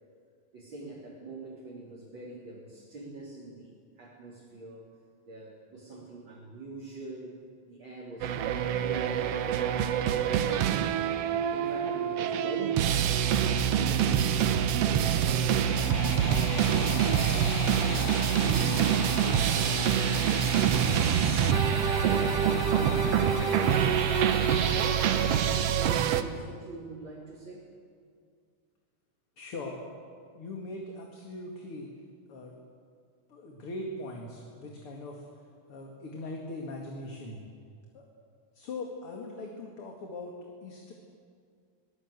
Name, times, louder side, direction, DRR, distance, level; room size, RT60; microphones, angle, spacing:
voice 1, 0.5-4.9 5.2-7.4 7.7-10.2 10.6-14.3 14.8-19.0 19.6-21.2 22.8-24.1 24.9-27.7, right 3 dB, 35° right, -5 dB, 4.0 m, -44 dB
sound 1, 8.2-26.2, right 9 dB, 70° right, 1.6 m, -26 dB
sound 2, 15.2-26.4, left 12 dB, 80° left, 2.2 m, -40 dB
voice 2, 22.0-22.5 29.4-29.8 30.3-31.9 32.3-32.5 33.3-35.3 35.7-37.4 37.9-38.0 38.5-40.9, left 2 dB, 45° left, 1 dB, 2.7 m, -40 dB
23.0 x 18.0 x 8.2 m, 2.2 s
omnidirectional pair, 3.7 m